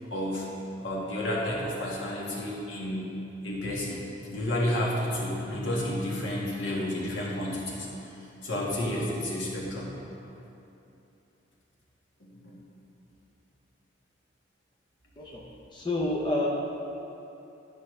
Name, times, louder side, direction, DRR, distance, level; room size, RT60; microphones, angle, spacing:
voice 1, 0.1-0.5 0.8-3.1 3.4-7.9 8.4-9.9 12.2-12.5, left 1 dB, 75° left, -4 dB, 1.5 m, -31 dB
voice 2, 15.2-16.5, left 1 dB, 25° left, -3 dB, 0.6 m, -29 dB
11.0 x 5.6 x 3.2 m, 2.9 s
head